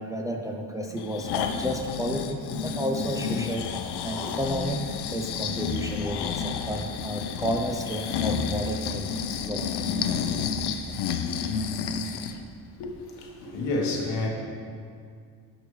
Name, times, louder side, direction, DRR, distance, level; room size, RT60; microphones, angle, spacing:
voice 1, 0.0-3.6 4.0-9.1 9.5-9.9, equal, 10° right, 1 dB, 0.4 m, -32 dB
Breathing, 1.0-12.4 12.8-12.9, left 6 dB, 65° left, 0.6 m, -30 dB
voice 2, 12.8-14.3, left 2 dB, 85° left, 0 dB, 1.3 m, -30 dB
11.0 x 5.2 x 3.1 m, 2.2 s
cardioid pair, 115°, 43 cm